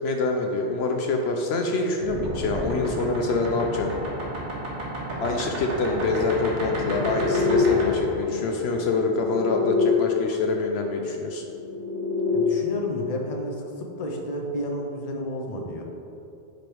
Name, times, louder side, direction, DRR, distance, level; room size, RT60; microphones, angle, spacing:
voice 1, 0.0-3.9 5.2-11.4, left 3 dB, 70° left, 2 dB, 0.8 m, -25 dB
sound 1, 2.0-9.9 11.2-12.4, left 3 dB, 85° right, 1.5 m, -28 dB
voice 2, 12.3-15.8, equal, 40° left, 1 dB, 0.7 m, -31 dB
5.1 x 5.0 x 4.5 m, 2.8 s
omnidirectional pair, 1.2 m